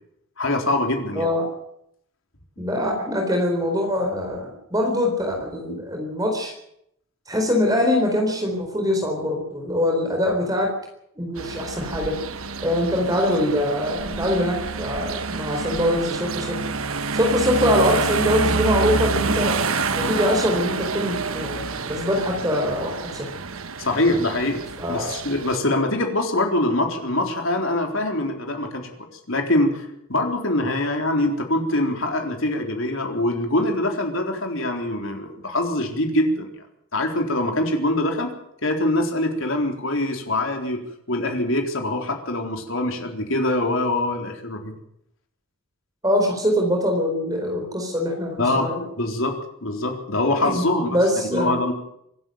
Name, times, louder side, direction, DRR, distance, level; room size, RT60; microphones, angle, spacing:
voice 1, 0.4-1.3 23.8-24.6 24.9-28.8 29.3-36.5 36.9-38.3 38.6-40.8 41.1-44.7 48.4-48.7 49.0-49.3 49.6-51.0 51.3-51.7, left 1 dB, 70° left, 3 dB, 3.9 m, -23 dB
voice 2, 1.2-1.5 2.6-6.5 7.3-10.7 11.2-12.2 12.6-16.6 17.1-23.3 24.8-25.1 46.0-48.8 50.4-50.6 50.9-51.6, left 1 dB, 15° right, 2 dB, 4.1 m, -23 dB
sound 1, 11.4-25.6, right 4 dB, 80° right, 1.3 m, -28 dB
25.0 x 11.5 x 9.3 m, 0.75 s
head